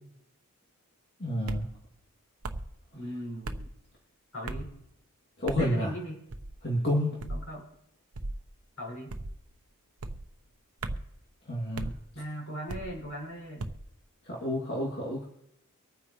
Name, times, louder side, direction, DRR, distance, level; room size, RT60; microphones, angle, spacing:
voice 1, 1.2-1.7 5.4-5.9 6.6-7.2 11.4-11.9 14.2-15.2, equal, 50° left, -4 dB, 2.6 m, -29 dB
sound 1, 1.5-1.7 2.4-2.7 3.4-3.7 4.4-4.7 5.5-5.7 6.3-6.6 7.2-7.5 8.1-8.4 9.1-9.4 10.0-10.3 10.8-11.1 11.7-12.0 12.7-13.0 13.6-13.9, right 2 dB, 80° right, 0.9 m, -36 dB
voice 2, 2.9-3.7 4.3-4.7 5.5-6.2 7.3-7.6 8.8-9.1 12.1-13.6, equal, 70° left, -3 dB, 6.2 m, -38 dB
24.5 x 9.2 x 3.2 m, 0.80 s
head